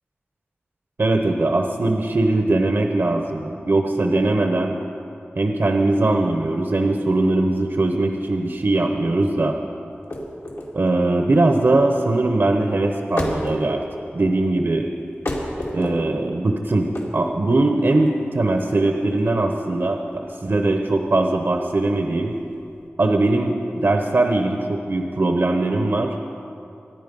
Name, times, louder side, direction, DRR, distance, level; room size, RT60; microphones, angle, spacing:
voice 1, 1.0-4.8 5.4-9.6 10.7-13.8 14.1-14.9 15.7-22.3 23.0-26.2, right 2 dB, 60° right, 3 dB, 0.9 m, -20 dB
sound 1, 9.9-22.9, left 1 dB, 70° left, 2.4 m, -33 dB
25.5 x 10.5 x 5.4 m, 2.7 s
wide cardioid pair, 80°, 4 cm